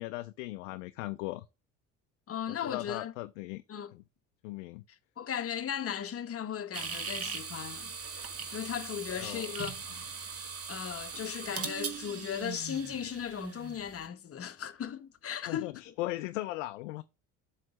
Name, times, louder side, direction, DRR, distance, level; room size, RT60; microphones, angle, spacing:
voice 1, 0.0-1.5 2.5-3.6 3.9-4.0 4.4-4.8 9.1-9.5 15.5-17.0, left 18 dB, 85° left, 0.5 m, -38 dB
voice 2, 2.3-3.1 3.7-3.9 5.2-7.9 8.5-9.8 10.7-15.9, left 9 dB, 40° left, 1.0 m, -37 dB
sound 1, 6.7-14.0, right 5 dB, 40° right, 1.7 m, -40 dB
7.6 x 3.3 x 6.0 m
hypercardioid pair, 65°, 36 cm